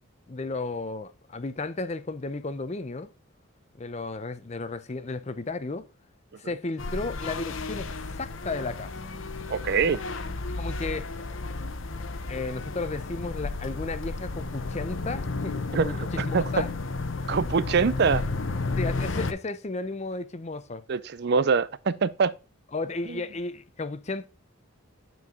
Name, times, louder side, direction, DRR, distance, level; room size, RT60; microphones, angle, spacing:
voice 1, 0.3-3.1 3.8-5.9 6.4-8.9 10.6-11.1 12.3-16.7 18.7-20.8 22.7-24.3, left 3 dB, 30° left, 0.5 m, -34 dB
sound 1, 6.8-19.3, left 3 dB, 65° left, 0.9 m, -32 dB
voice 2, 9.5-10.0 15.7-16.4 17.3-18.2 20.9-22.3 23.1-23.2, right 5 dB, 50° right, 0.4 m, -24 dB
9.6 x 4.7 x 3.7 m
head